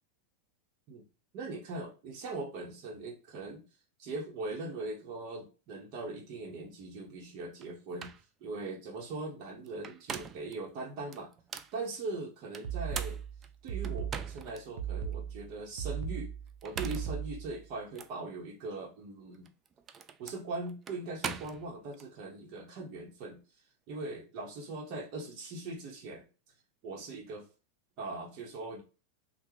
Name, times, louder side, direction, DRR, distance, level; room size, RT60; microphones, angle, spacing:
voice 1, 1.3-3.6 4.0-8.1 8.4-11.3 11.7-13.2 13.6-16.3 16.6-19.5 20.2-23.4 23.9-26.3 26.8-27.5 28.0-28.8, right 2 dB, 50° right, -1 dB, 1.0 m, -40 dB
sound 1, 7.6-7.7 8.0-8.3 9.7-10.5 11.1-11.8 12.5-14.6 15.1-15.2 16.5-17.2 18.0-18.1 19.3-22.1, right 6 dB, 30° right, 0.3 m, -42 dB
sound 2, 12.6-17.6, right 9 dB, 80° right, 0.6 m, -37 dB
3.4 x 2.2 x 3.0 m, 0.33 s
hypercardioid pair, 115°, 0 cm